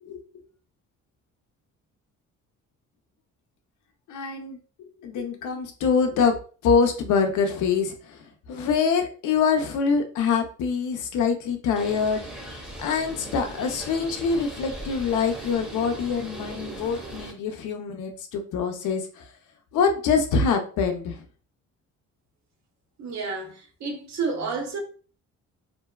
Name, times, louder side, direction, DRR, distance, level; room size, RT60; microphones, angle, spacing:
voice 1, 4.1-4.6 5.0-19.3 19.7-21.2, left 5 dB, 80° left, 0.6 m, -25 dB
Bird, 11.8-17.3, right 1 dB, 5° right, 0.8 m, -39 dB
voice 2, 23.0-24.8, right 4 dB, 65° right, 0.8 m, -30 dB
2.6 x 2.2 x 2.2 m
cardioid pair, 90°, 30 cm